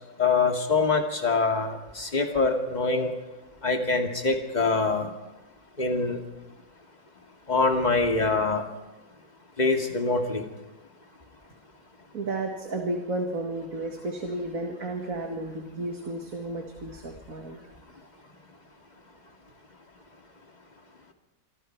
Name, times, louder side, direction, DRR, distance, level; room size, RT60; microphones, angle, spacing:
voice 1, 0.2-3.1 3.6-5.1 5.8-6.2 7.5-8.6 9.6-10.5, left 3 dB, 30° left, 3 dB, 2.5 m, -24 dB
voice 2, 12.1-17.6, right 2 dB, 75° right, 3 dB, 2.3 m, -32 dB
26.5 x 24.5 x 4.7 m, 1.1 s
omnidirectional pair, 1.5 m